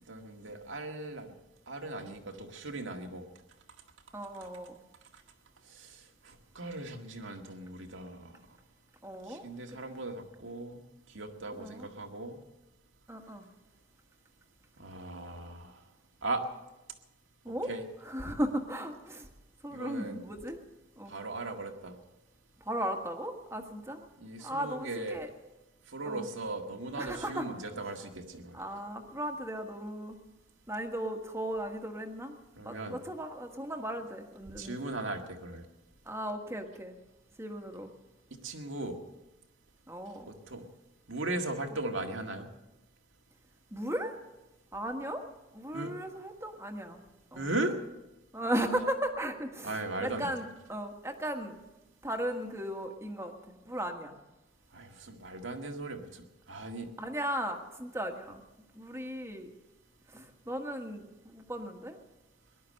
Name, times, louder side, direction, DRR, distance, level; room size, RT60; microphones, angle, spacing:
voice 1, 0.1-1.3 1.7-3.3 5.7-6.0 6.2-8.3 9.3-12.4 14.8-15.8 16.2-16.5 17.7-17.8 19.7-20.2 21.1-22.0 24.2-25.2 25.9-28.6 32.6-33.0 34.6-35.6 38.4-39.0 40.3-40.6 41.1-42.5 45.7-45.9 47.4-47.7 49.6-50.3 54.7-56.9, right 2 dB, 80° right, 3 dB, 1.8 m, -38 dB
voice 2, 4.1-4.8 9.0-9.8 11.6-11.9 13.1-13.5 17.4-17.7 18.0-19.3 19.6-20.6 21.0-21.1 22.6-24.1 24.4-25.3 26.0-26.3 27.0-27.4 28.5-30.2 30.7-32.4 32.6-34.9 36.0-37.0 37.4-37.9 39.9-40.3 43.7-44.1 44.7-45.2 45.5-47.0 47.3-47.5 48.3-50.4 50.7-51.6 52.0-54.2 57.0-58.4 58.7-59.5 60.1-62.0, right 1 dB, 15° right, 4 dB, 1.5 m, -36 dB
19.5 x 11.5 x 6.4 m, 1.0 s
head